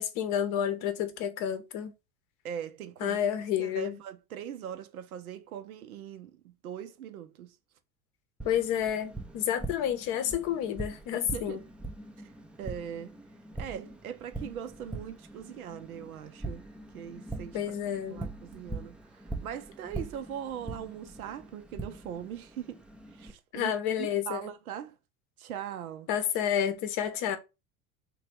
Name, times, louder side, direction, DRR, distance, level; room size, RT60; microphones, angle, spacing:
voice 1, 0.0-1.9 3.0-4.0 8.4-11.6 17.5-18.3 23.5-24.4 26.1-27.4, left 9 dB, 45° left, 0.7 m, -30 dB
voice 2, 2.4-3.2 3.6-7.6 11.1-11.6 12.2-12.3 12.6-13.2 13.6-16.6 16.9-17.7 18.1-22.8 23.1-24.9 25.4-26.1, right 9 dB, 70° right, 0.6 m, -41 dB
Tap, 8.4-23.3, right 2 dB, 5° right, 0.4 m, -42 dB
3.3 x 2.3 x 4.3 m
figure-of-eight pair, 70°, 44 cm